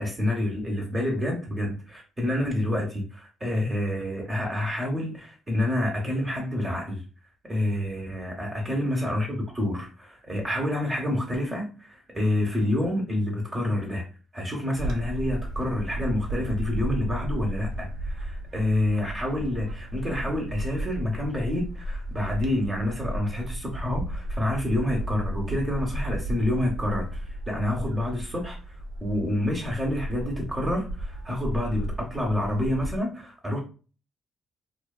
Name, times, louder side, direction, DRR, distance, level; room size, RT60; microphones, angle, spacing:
voice 1, 0.0-7.0 7.4-14.0 14.3-27.2 27.5-28.6 29.0-33.6, left 1 dB, 20° right, 0.8 m, -28 dB
Bird / Wind, 14.7-33.0, right 1 dB, 75° right, 0.5 m, -34 dB
2.5 x 2.3 x 2.3 m
cardioid pair, 90°, 0 cm